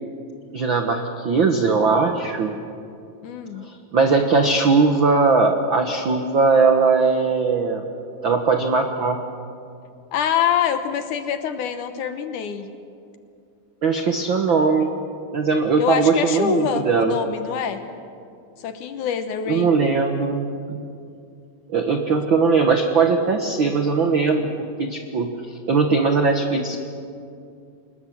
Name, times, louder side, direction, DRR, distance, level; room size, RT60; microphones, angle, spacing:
voice 1, 0.5-2.5 3.6-7.8 8.2-9.2 13.8-14.9 15.3-17.2 19.5-20.8 21.7-26.8, right 4 dB, 75° right, 5 dB, 1.1 m, -20 dB
voice 2, 3.2-3.7 10.1-12.7 15.8-17.8 18.6-19.7, left 8 dB, 70° left, 9 dB, 2.2 m, -25 dB
25.0 x 20.5 x 7.9 m, 2.5 s
omnidirectional pair, 4.3 m